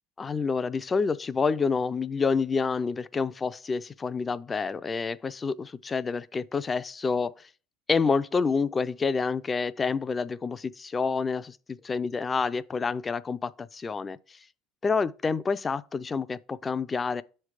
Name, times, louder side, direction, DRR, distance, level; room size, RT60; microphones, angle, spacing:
voice 1, 0.2-7.3 7.9-14.2 14.8-17.2, left 5 dB, 20° left, 0.3 m, -28 dB
7.1 x 3.3 x 4.9 m
supercardioid pair, 115°, 0 cm